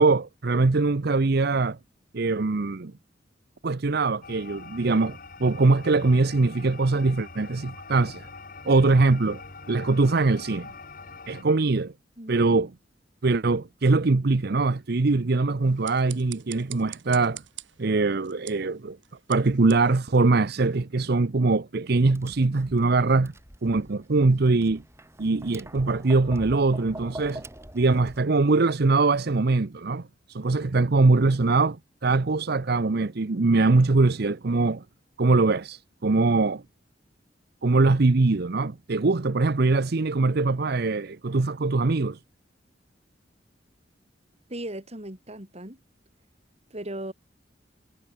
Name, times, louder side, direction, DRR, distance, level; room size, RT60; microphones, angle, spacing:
voice 1, 0.0-1.8 2.1-2.9 3.6-8.3 8.6-9.4 9.7-10.7 11.3-11.9 12.3-12.7 13.2-17.4 17.8-19.0 19.3-23.3 23.6-24.8 25.2-27.4 27.7-34.8 35.2-36.6 37.6-42.2, right 3 dB, 60° right, 0.7 m, -22 dB
sound 1, 4.2-11.4, left 4 dB, 50° left, 4.4 m, -44 dB
voice 2, 12.2-12.7 44.5-45.8 46.7-47.1, right 1 dB, 35° right, 6.4 m, -37 dB
sound 2, 15.6-20.9, right 14 dB, 80° right, 3.9 m, -46 dB
Tap, 21.9-28.2, right 1 dB, 15° right, 6.6 m, -44 dB
head